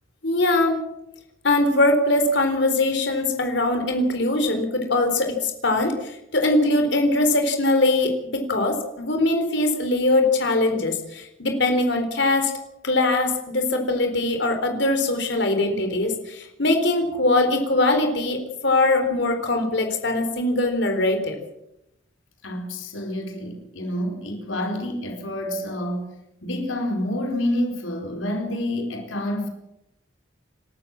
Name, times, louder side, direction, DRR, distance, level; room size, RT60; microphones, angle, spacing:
voice 1, 0.2-0.8 1.4-12.5 12.8-21.4, left 2 dB, 60° left, 5 dB, 4.0 m, -22 dB
voice 2, 22.4-26.1 26.4-29.5, left 1 dB, 80° left, 3 dB, 4.6 m, -28 dB
28.5 x 13.5 x 7.5 m, 0.85 s
head